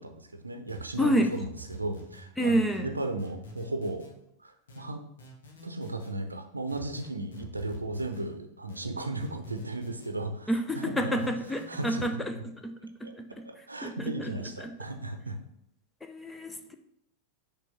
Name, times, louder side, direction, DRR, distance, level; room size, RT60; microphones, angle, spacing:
voice 1, 0.0-4.1 4.4-5.0 5.6-11.3 11.7-12.4 13.0-13.1 13.4-15.4, right 2 dB, 80° right, 6 dB, 0.7 m, -35 dB
sound 1, 0.7-2.3 2.7-4.1 4.7-6.1 6.7-8.3 8.7-10.1 10.7-12.1, equal, 65° left, 1.5 m, -47 dB
voice 2, 1.0-1.3 2.4-2.9 10.5-12.4 12.6-12.7 13.0-13.4 13.8-14.3 14.6-14.7 16.0-16.7, equal, 5° left, 6 dB, 0.6 m, -29 dB
6.1 x 3.4 x 5.7 m, 0.75 s
figure-of-eight pair, 90°, 0 cm